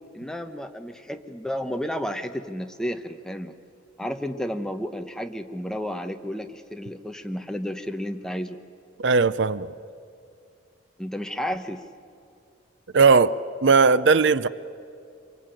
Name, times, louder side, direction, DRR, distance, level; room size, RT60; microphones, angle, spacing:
voice 1, 0.1-3.5 4.0-8.6 11.0-11.8, equal, 5° left, 0.9 m, -32 dB
voice 2, 9.0-9.7 12.9-14.5, right 4 dB, 70° right, 0.6 m, -18 dB
26.5 x 24.0 x 9.0 m
head